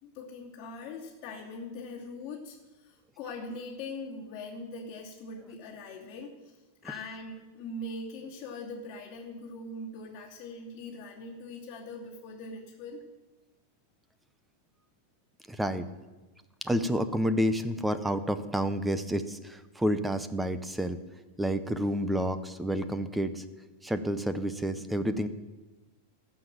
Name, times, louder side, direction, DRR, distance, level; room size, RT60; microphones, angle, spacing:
voice 1, 0.0-13.0, left 2 dB, 35° left, -6 dB, 2.6 m, -42 dB
voice 2, 15.5-15.9 16.6-21.0 21.4-23.4 23.8-25.3, equal, 5° right, 11 dB, 0.7 m, -29 dB
15.0 x 6.1 x 7.5 m, 1.1 s
supercardioid pair, 145°, 0 cm